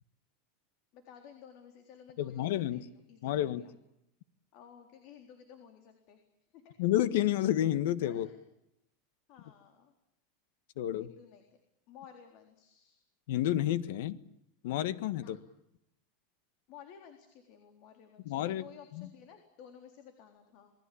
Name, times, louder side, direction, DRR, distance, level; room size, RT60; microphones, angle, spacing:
voice 1, 0.9-3.7 4.5-6.2 6.5-6.7 8.1-8.4 9.3-9.9 11.0-11.4 11.9-13.0 15.1-15.3 16.7-20.7, left 8 dB, 45° left, 6 dB, 3.9 m, -54 dB
voice 2, 2.2-2.8 3.2-3.6 6.8-8.3 10.8-11.1 13.3-14.2 14.6-15.4 18.2-18.6 18.9-19.1, left 12 dB, 65° left, 15 dB, 1.6 m, -30 dB
28.5 x 20.0 x 8.7 m, 0.82 s
supercardioid pair, 165°, 0 cm